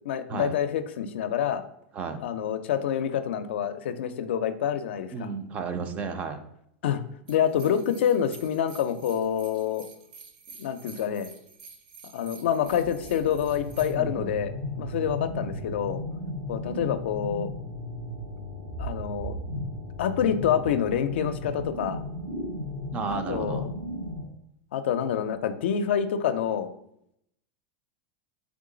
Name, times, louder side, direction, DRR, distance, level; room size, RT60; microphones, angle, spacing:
voice 1, 0.1-1.6 2.2-5.3 6.8-7.0 7.3-9.9 10.6-11.3 12.1-14.5 14.8-16.0 16.5-17.5 18.8-19.4 20.0-22.0 23.1-23.7 24.7-26.7, left 9 dB, 90° left, 10 dB, 0.4 m, -27 dB
voice 2, 5.1-6.4 13.9-14.3 14.8-15.1 22.9-23.7, right 5 dB, 25° right, 8 dB, 0.4 m, -33 dB
sound 1, 7.3-13.9, right 5 dB, 55° right, 0.7 m, -49 dB
sound 2, 12.7-24.2, left 1 dB, 80° right, 1.7 m, -35 dB
3.8 x 3.6 x 3.8 m, 0.75 s
supercardioid pair, 155°, 6 cm